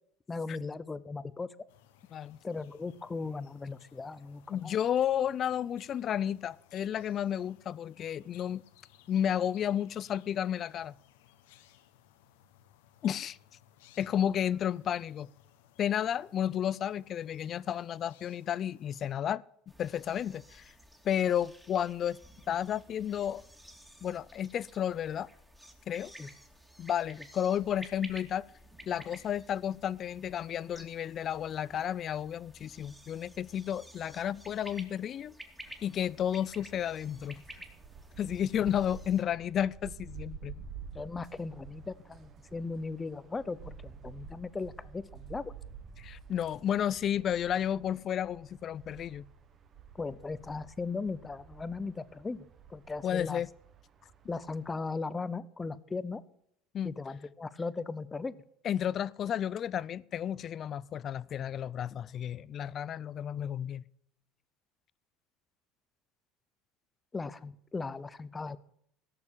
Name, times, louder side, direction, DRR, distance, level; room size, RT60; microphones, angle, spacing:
voice 1, 0.3-1.5 2.4-4.8 26.2-26.3 40.9-45.5 49.9-53.4 54.3-56.2 56.8-58.4 67.1-68.6, left 4 dB, 20° left, 0.8 m, -38 dB
sound 1, 1.7-19.1, left 11 dB, 90° left, 1.3 m, -62 dB
voice 2, 4.5-8.6 9.1-10.9 13.0-13.4 14.0-15.3 15.8-19.4 19.8-20.7 21.0-22.2 22.5-23.4 24.0-25.3 25.9-26.1 26.8-28.5 28.9-35.3 35.8-37.4 38.2-40.6 46.0-49.2 53.0-53.5 56.7-56.9 58.6-63.8, left 9 dB, 40° left, 0.5 m, -32 dB
sound 2, 19.7-39.2, equal, 5° right, 2.5 m, -53 dB
sound 3, 35.6-54.7, right 6 dB, 40° right, 1.5 m, -50 dB
17.0 x 6.9 x 8.7 m
supercardioid pair, 110°, 0 cm